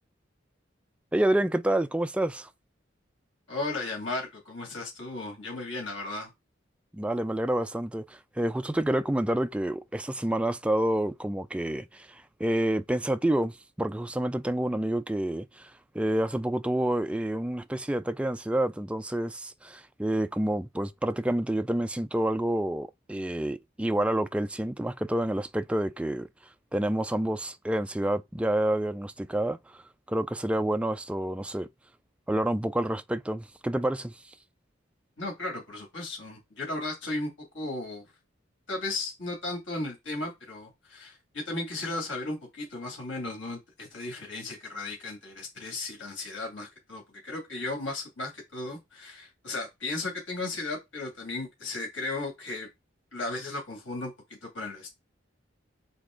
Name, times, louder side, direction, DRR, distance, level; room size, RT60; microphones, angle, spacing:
voice 1, 1.1-2.5 6.9-26.3 26.7-29.8 30.1-31.7 32.3-34.1, right 1 dB, 5° right, 0.3 m, -28 dB
voice 2, 3.5-6.3 35.2-38.1 38.7-52.7 53.1-54.1 54.4-54.9, left 2 dB, 75° left, 2.5 m, -35 dB
7.0 x 4.2 x 3.8 m
head